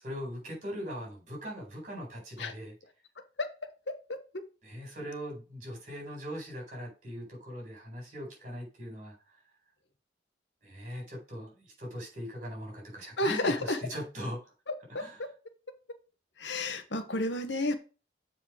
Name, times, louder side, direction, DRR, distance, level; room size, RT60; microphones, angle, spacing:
voice 1, 0.0-2.7 4.6-9.1 10.6-14.5 15.0-15.2, equal, 40° right, 0 dB, 4.2 m, -40 dB
voice 2, 13.2-13.8 14.7-15.3 16.4-17.7, left 2 dB, 75° left, 8 dB, 1.2 m, -31 dB
7.4 x 4.9 x 4.9 m, 0.33 s
head